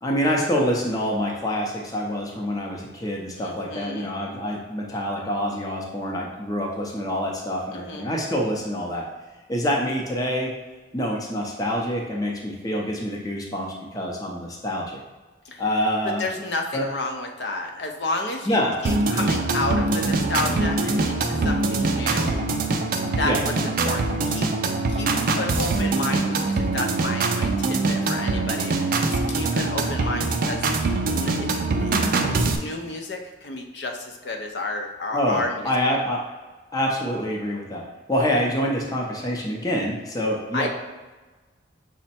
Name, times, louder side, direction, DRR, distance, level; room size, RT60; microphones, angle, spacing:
voice 1, 0.0-9.0 9.5-10.5 10.9-15.0 15.6-16.3 16.7-16.9 18.5-18.8 23.2-23.4 35.1-36.2 36.7-40.7, equal, 20° left, -1 dB, 0.6 m, -26 dB
voice 2, 3.4-4.1 7.7-8.1 15.4-15.6 16.0-22.4 23.1-24.5 24.9-30.8 31.1-31.5 31.8-36.0 40.5-40.7, left 2 dB, 65° left, 3 dB, 0.6 m, -31 dB
sound 1, 18.8-32.6, right 3 dB, 50° right, 0.4 m, -23 dB
6.0 x 2.1 x 4.2 m, 1.3 s
head